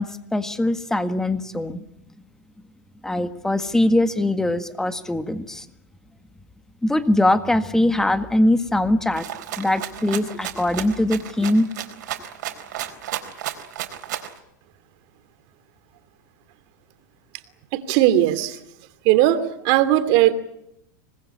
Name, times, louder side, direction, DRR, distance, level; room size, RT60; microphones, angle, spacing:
voice 1, 0.0-1.8 3.0-5.7 6.8-11.7, left 1 dB, 5° left, 10 dB, 1.7 m, -22 dB
Rattle (instrument), 9.1-14.4, right 12 dB, 75° right, 4.1 m, -33 dB
voice 2, 17.7-18.5 19.0-20.3, right 13 dB, 50° right, 10 dB, 2.7 m, -18 dB
26.5 x 20.0 x 9.8 m, 0.81 s
supercardioid pair, 130°, 10 cm